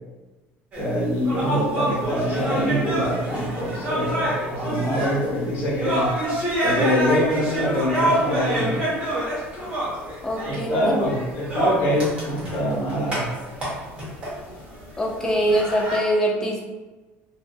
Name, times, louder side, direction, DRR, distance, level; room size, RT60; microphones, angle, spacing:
sound 1, 0.7-16.0, right 1 dB, 25° right, 1.0 m, -27 dB
voice 1, 0.8-6.1 6.6-8.8 10.4-13.2, equal, 50° left, -5 dB, 0.9 m, -24 dB
voice 2, 10.2-10.9 15.0-16.6, equal, 10° left, -1 dB, 0.4 m, -23 dB
2.5 x 2.4 x 2.3 m, 1.2 s
cardioid pair, 150°, 5 cm